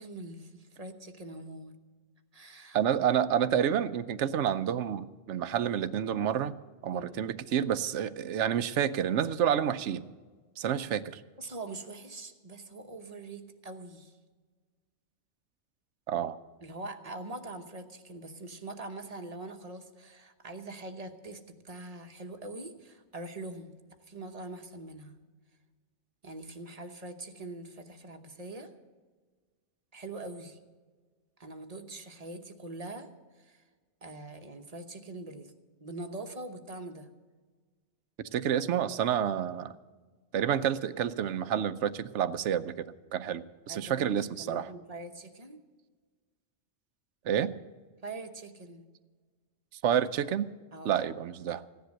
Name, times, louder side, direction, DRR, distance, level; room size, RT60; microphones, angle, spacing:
voice 1, 0.0-1.7 2.3-3.1 6.9-7.2 10.6-10.7 11.4-14.2 16.6-23.7 24.0-25.2 26.2-28.7 29.9-30.6 31.4-33.6 34.0-35.5 35.8-37.1 43.7-44.1 44.4-45.6 48.0-48.8 50.7-51.2, right 2 dB, 35° right, 6 dB, 1.1 m, -43 dB
voice 2, 2.7-6.5 6.8-10.1 10.6-11.2 16.1-16.4 38.3-39.7 40.3-42.8 43.1-44.7 47.3-47.5 49.8-50.5 50.8-51.6, right 9 dB, 80° right, 14 dB, 1.0 m, -29 dB
16.0 x 10.5 x 6.4 m, 1.4 s
omnidirectional pair, 1.2 m